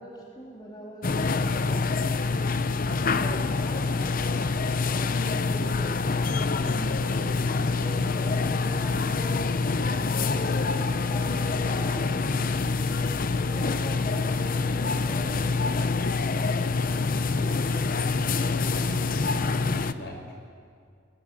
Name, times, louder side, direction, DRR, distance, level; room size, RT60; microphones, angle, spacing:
voice 1, 0.0-1.9 2.8-7.0 7.5-9.3 9.9-12.4 13.0-15.4, equal, 25° left, -3 dB, 3.2 m, -42 dB
sound 1, 1.0-19.9, left 4 dB, 50° left, 0.7 m, -26 dB
voice 2, 18.4-20.4, equal, 65° left, 3 dB, 5.1 m, -41 dB
21.0 x 20.0 x 8.6 m, 2.2 s
head